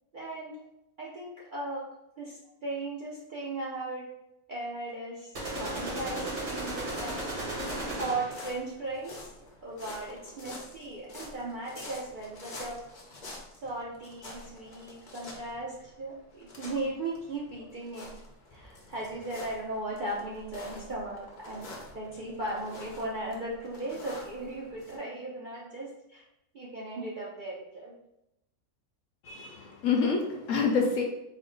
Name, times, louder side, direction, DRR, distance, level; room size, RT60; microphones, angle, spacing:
voice 1, 0.1-0.5 1.0-1.8 2.2-4.0 4.5-5.3 5.6-7.2 8.0-9.3 9.6-12.8 13.6-18.1 18.5-21.7 21.9-26.2 26.5-27.9, right 2 dB, 55° right, -6 dB, 0.5 m, -37 dB
sound 1, 5.4-8.5, right 1 dB, 80° right, 1.7 m, -35 dB
sound 2, 6.9-25.0, left 2 dB, 50° left, 0.5 m, -47 dB
voice 2, 29.2-31.0, left 5 dB, 70° left, 1 dB, 0.8 m, -27 dB
4.2 x 2.0 x 3.8 m, 0.86 s
omnidirectional pair, 1.6 m